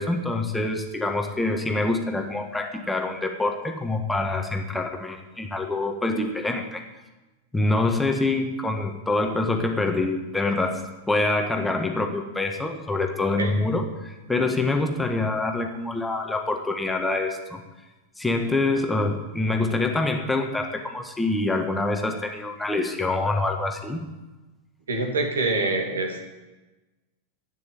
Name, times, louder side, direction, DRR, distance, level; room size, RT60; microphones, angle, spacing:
voice 1, 0.0-6.8 7.5-10.8 11.1-17.6 18.2-24.0, left 2 dB, 5° left, 3 dB, 1.6 m, -25 dB
voice 2, 24.9-26.2, right 3 dB, 70° right, 3 dB, 2.6 m, -25 dB
12.0 x 9.2 x 8.8 m, 1.1 s
figure-of-eight pair, 90°, 0 cm